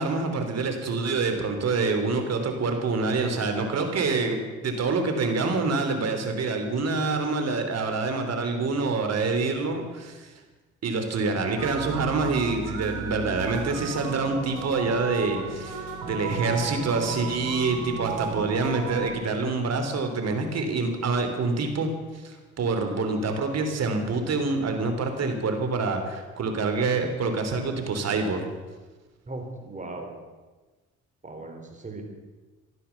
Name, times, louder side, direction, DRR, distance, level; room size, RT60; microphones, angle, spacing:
voice 1, 0.0-10.3 10.8-21.9 22.2-28.4, right 3 dB, 55° right, 6 dB, 3.2 m, -26 dB
sound 1, 11.6-19.1, right 5 dB, 85° right, 3.0 m, -34 dB
voice 2, 29.3-30.1 31.2-32.0, right 2 dB, 25° right, 3 dB, 3.7 m, -38 dB
15.5 x 11.5 x 7.0 m, 1.3 s
cardioid pair, 90°, 30 cm